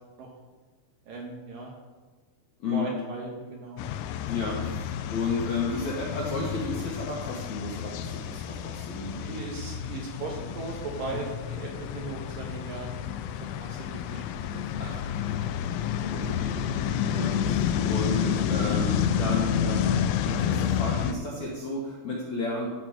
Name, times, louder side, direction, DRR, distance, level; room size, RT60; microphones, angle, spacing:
voice 1, 1.1-1.7 2.7-3.9 9.2-13.1 13.6-14.9 16.0-16.4 16.8-17.1, right 3 dB, 70° right, -1 dB, 2.3 m, -38 dB
sound 1, 3.8-21.1, left 8 dB, 85° left, 2.9 m, -30 dB
voice 2, 4.3-9.4 11.1-11.2 14.8-15.0 16.1-16.8 17.1-22.8, left 3 dB, 60° left, -4 dB, 1.9 m, -33 dB
14.0 x 6.0 x 5.1 m, 1.3 s
omnidirectional pair, 5.1 m